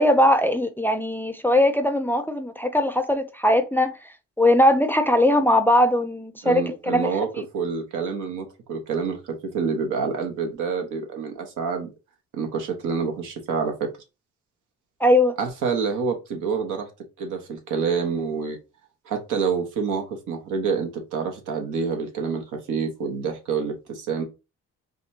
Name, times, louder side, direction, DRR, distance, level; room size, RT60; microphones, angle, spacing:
voice 1, 0.0-4.0 4.4-7.1 15.0-15.3, left 1 dB, 5° left, 0.4 m, -20 dB
voice 2, 6.4-7.3 7.5-11.9 12.3-13.9 15.4-16.9 17.2-18.6 19.0-24.2, right 5 dB, 80° right, 1.1 m, -27 dB
5.0 x 2.4 x 2.7 m
cardioid pair, 90°, 30 cm